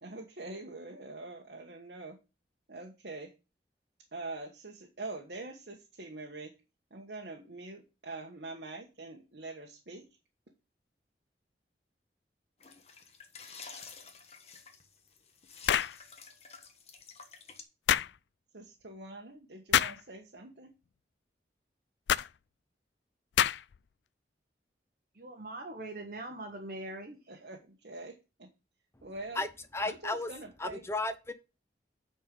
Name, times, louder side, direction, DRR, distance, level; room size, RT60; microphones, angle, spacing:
voice 1, 0.0-2.2 2.7-3.3 4.1-6.5 6.9-10.0 18.5-20.7 27.3-28.5 29.0-29.4 29.8-30.8, right 2 dB, 70° right, 1 dB, 1.3 m, -44 dB
sound 1, 12.6-17.6, left 5 dB, 35° left, 1.3 m, -50 dB
sound 2, 15.7-16.0 17.9-18.1 19.7-20.0 22.1-22.3 23.4-23.8, left 10 dB, 85° left, 0.4 m, -26 dB
voice 2, 25.1-27.2, right 2 dB, 55° right, 3 dB, 1.2 m, -42 dB
voice 3, 29.7-30.3 30.6-31.3, left 2 dB, 15° left, 10 dB, 0.8 m, -33 dB
9.2 x 4.5 x 5.3 m, 0.29 s
head